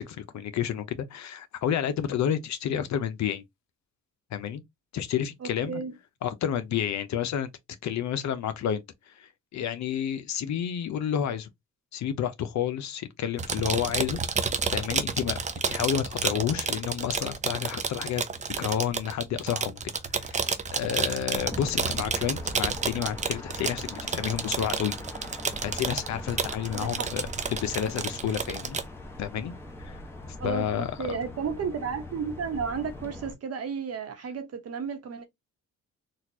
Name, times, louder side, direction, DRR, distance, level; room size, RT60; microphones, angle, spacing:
voice 1, 0.0-3.4 4.3-4.6 4.9-5.8 6.2-7.5 7.8-11.5 11.9-14.2 14.7-15.4 15.7-18.2 18.6-19.8 20.1-25.3 25.6-28.8 29.2-29.5 29.8-30.0 30.4-31.2, left 9 dB, 65° left, 0.7 m, -30 dB
voice 2, 5.4-5.9 26.7-27.1 30.4-35.2, right 6 dB, 55° right, 1.1 m, -33 dB
sound 1, 13.4-28.9, right 5 dB, 25° right, 0.5 m, -30 dB
sound 2, 21.4-33.3, left 2 dB, 10° left, 1.1 m, -42 dB
4.1 x 2.4 x 2.8 m
cardioid pair, 90°, 30 cm